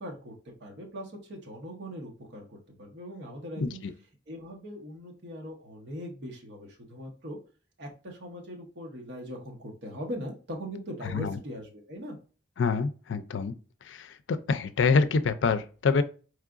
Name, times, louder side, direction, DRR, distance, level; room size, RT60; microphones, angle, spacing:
voice 1, 0.0-3.8 4.3-7.4 7.8-12.2, equal, 65° right, 0.9 m, -40 dB
voice 2, 3.6-3.9 11.0-11.4 12.6-13.5 13.8-16.0, left 4 dB, 85° left, 0.4 m, -26 dB
4.6 x 3.1 x 2.5 m
head